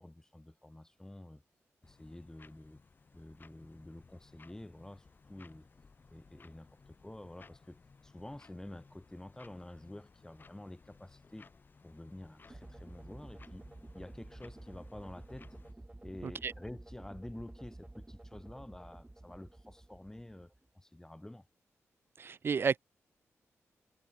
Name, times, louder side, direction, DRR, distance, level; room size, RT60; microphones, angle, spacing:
voice 1, 0.0-1.4 1.8-2.8 3.1-5.7 6.1-11.5 11.8-13.6 13.9-15.6 16.0-21.4, left 1 dB, 10° left, 3.3 m, -49 dB
sound 1, 1.8-15.7, left 4 dB, 40° left, 5.6 m, -60 dB
sound 2, 12.5-20.7, right 1 dB, 15° right, 4.8 m, -51 dB
voice 2, 22.2-22.8, right 6 dB, 45° right, 0.4 m, -32 dB
wide cardioid pair, 100°, 5 cm